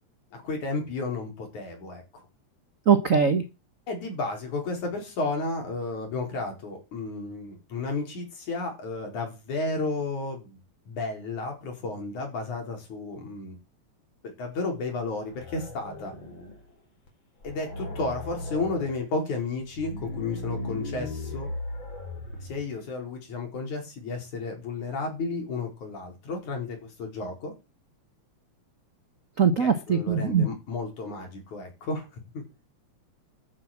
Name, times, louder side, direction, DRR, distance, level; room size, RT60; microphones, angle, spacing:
voice 1, 0.3-2.2 3.9-13.6 14.2-16.1 17.4-21.5 22.4-27.5 29.4-32.4, left 3 dB, 85° left, 2 dB, 6.0 m, -33 dB
voice 2, 2.9-3.4 29.4-30.5, right 6 dB, 65° right, 10 dB, 0.7 m, -21 dB
sound 1, 15.2-16.7 17.1-17.2 17.4-19.0 19.6-22.7, left 2 dB, 40° left, 4.6 m, -37 dB
13.5 x 8.0 x 7.3 m, 0.28 s
omnidirectional pair, 3.3 m